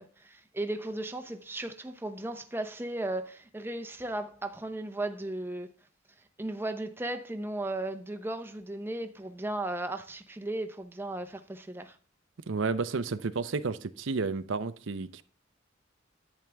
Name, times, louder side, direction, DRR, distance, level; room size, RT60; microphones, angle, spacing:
voice 1, 0.0-5.7 6.4-12.0, right 1 dB, 10° right, 0.8 m, -36 dB
voice 2, 12.5-15.2, right 4 dB, 75° right, 0.6 m, -31 dB
10.5 x 9.1 x 3.4 m
head